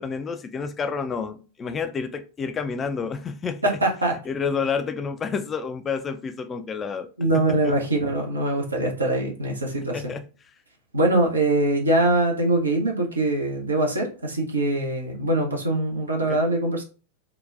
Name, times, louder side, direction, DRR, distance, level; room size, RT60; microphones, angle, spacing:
voice 1, 0.0-3.8 4.3-7.1 7.3-7.8 9.9-10.2 16.3-16.4, left 5 dB, 20° left, 0.4 m, -29 dB
voice 2, 3.6-4.2 7.2-10.0 10.9-16.8, right 2 dB, 80° right, 0.7 m, -23 dB
3.8 x 2.2 x 2.3 m
figure-of-eight pair, 90°, 0 cm